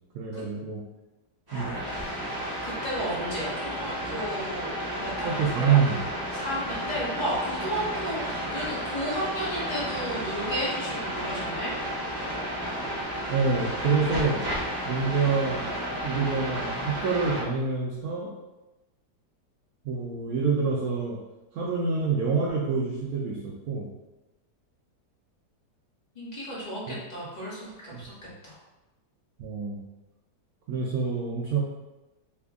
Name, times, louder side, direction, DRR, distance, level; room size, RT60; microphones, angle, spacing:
voice 1, 0.1-0.8 1.5-1.8 5.2-6.0 13.3-14.4 14.9-15.7 16.0-18.3 19.8-21.2 21.5-23.9 26.9-27.0 27.9-28.1 29.4-29.8 30.7-31.6, right 5 dB, 70° right, -5 dB, 1.0 m, -26 dB
sound 1, 1.5-17.4, equal, 30° right, 0.4 m, -32 dB
voice 2, 2.6-5.8 6.3-11.7 26.1-28.1 28.4-28.6, equal, 30° left, -7 dB, 0.9 m, -33 dB
3.4 x 2.2 x 3.5 m, 1.1 s
omnidirectional pair, 1.8 m